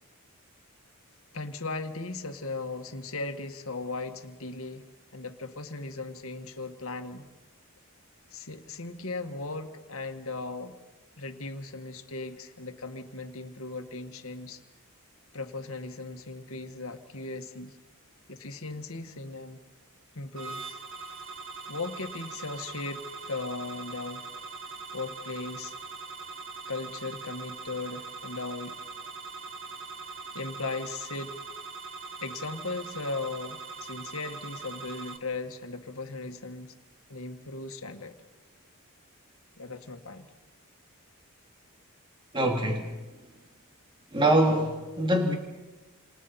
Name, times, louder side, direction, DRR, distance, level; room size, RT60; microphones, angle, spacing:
voice 1, 1.3-4.8 5.1-7.3 8.3-10.8 11.2-14.6 15.3-17.8 18.3-19.6 20.1-20.8 21.7-24.3 24.9-25.8 26.7-28.8 30.3-31.3 32.2-36.7 37.1-38.2 39.6-40.3, left 3 dB, 70° left, 6 dB, 1.8 m, -37 dB
sound 1, 20.4-35.2, right 4 dB, 60° right, 1.6 m, -42 dB
voice 2, 42.3-43.1 44.1-45.4, right 1 dB, 20° right, 2 dB, 2.4 m, -24 dB
29.0 x 27.5 x 4.3 m, 1.2 s
head